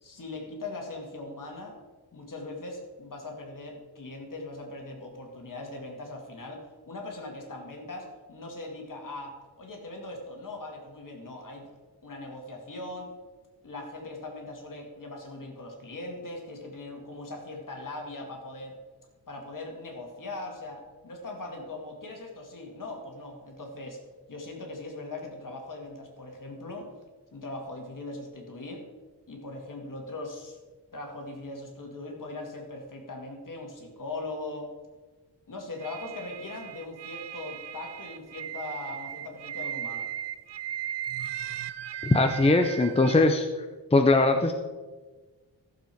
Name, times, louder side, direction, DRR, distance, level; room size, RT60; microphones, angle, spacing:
voice 1, 0.0-1.8 2.1-11.7 12.0-13.1 13.6-18.8 19.3-24.0 24.3-26.9 27.3-28.8 29.3-30.6 30.9-34.7 35.5-40.1, left 2 dB, 50° left, 1 dB, 2.3 m, -40 dB
sound 1, 35.8-43.2, right 10 dB, 80° right, 0.6 m, -37 dB
voice 2, 42.0-43.5 43.9-44.5, left 2 dB, 15° left, 5 dB, 0.6 m, -21 dB
14.5 x 7.2 x 4.5 m, 1.3 s
wide cardioid pair, 120°, 41 cm